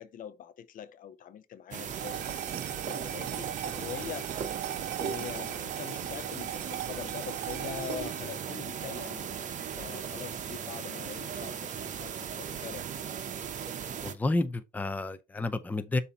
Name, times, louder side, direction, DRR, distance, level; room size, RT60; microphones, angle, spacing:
voice 1, 0.0-2.4 2.9-4.3 5.0-12.9, left 9 dB, 55° left, 0.7 m, -43 dB
sound 1, 1.7-14.1, right 8 dB, 45° right, 0.9 m, -37 dB
sound 2, 1.9-10.4, right 13 dB, 75° right, 0.5 m, -41 dB
voice 2, 14.0-16.0, left 2 dB, 10° left, 0.5 m, -30 dB
6.9 x 2.8 x 5.2 m
cardioid pair, 110°, 17 cm